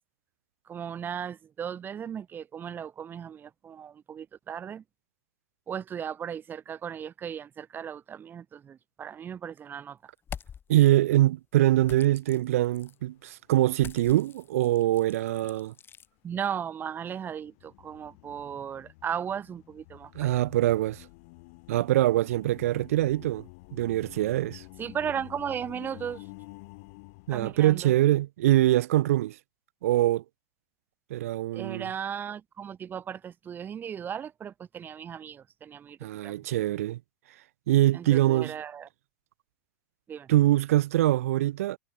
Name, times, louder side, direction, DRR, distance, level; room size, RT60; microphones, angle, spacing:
voice 1, 0.7-4.8 5.7-10.1 16.2-20.4 24.8-26.3 27.3-27.9 31.5-36.0 36.2-36.5 37.9-38.9 40.1-40.3, right 8 dB, 25° right, 0.5 m, -36 dB
sound 1, 10.2-10.9 11.8-13.0 13.8-16.1, left 7 dB, 30° left, 4.6 m, -45 dB
voice 2, 10.7-15.7 20.1-21.1 21.7-23.4 23.7-24.6 27.3-29.4 29.8-30.2 31.1-31.9 36.0-37.0 37.7-38.5 40.3-41.8, right 14 dB, 75° right, 0.7 m, -24 dB
sound 2, 12.7-13.2 13.6-13.7 17.2-28.0, left 28 dB, 60° left, 5.3 m, -49 dB
hypercardioid pair, 95°, 8 cm